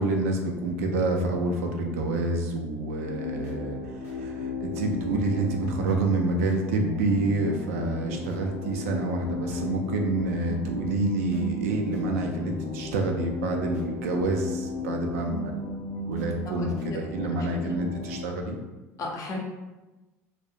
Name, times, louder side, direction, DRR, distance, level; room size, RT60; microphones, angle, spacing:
voice 1, 0.0-3.8 4.2-15.7 16.1-18.6, right 2 dB, 85° right, 2 dB, 0.4 m, -28 dB
sound 1, 3.0-18.3, left 2 dB, 85° left, 0.6 m, -34 dB
voice 2, 16.3-17.2 17.6-17.7 19.0-19.4, left 2 dB, 45° left, 0 dB, 0.6 m, -35 dB
2.3 x 2.0 x 2.7 m, 1.1 s
hypercardioid pair, 75°, 8 cm